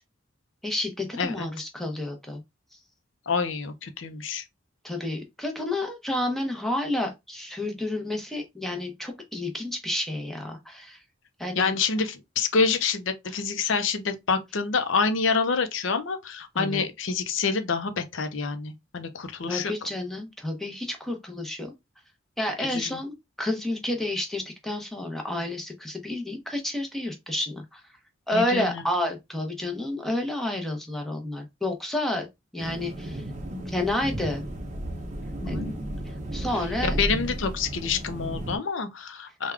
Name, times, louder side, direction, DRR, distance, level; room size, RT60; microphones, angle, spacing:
voice 1, 0.6-2.4 4.8-11.0 11.4-11.7 16.6-16.9 19.5-21.7 22.4-27.8 28.3-32.3 32.5-33.2 33.7-34.4 35.5-35.6 36.3-37.0, left 1 dB, ahead, 0.7 m, -30 dB
voice 2, 1.2-1.7 3.3-4.4 11.6-19.7 22.6-23.0 28.3-28.8 35.4-36.0 36.5-39.5, left 5 dB, 80° left, 0.6 m, -27 dB
sound 1, 32.6-38.6, right 1 dB, 35° right, 0.6 m, -33 dB
3.5 x 2.3 x 3.3 m
head